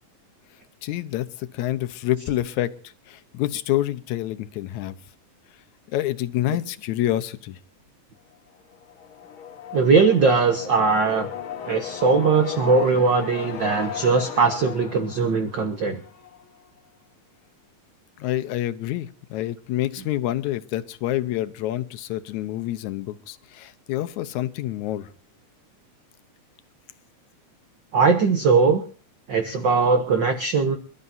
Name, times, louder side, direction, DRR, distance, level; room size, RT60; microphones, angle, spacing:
voice 1, 0.8-2.7 3.1-5.0 5.9-7.6 18.2-25.1, left 14 dB, 85° left, 11 dB, 2.2 m, -27 dB
sound 1, 8.7-16.5, left 8 dB, 55° left, 1.8 m, -36 dB
voice 2, 9.7-11.3 11.6-16.0 27.9-28.8 29.3-30.8, right 4 dB, 55° right, 7 dB, 1.4 m, -20 dB
28.0 x 12.5 x 2.7 m, 0.41 s
omnidirectional pair, 3.3 m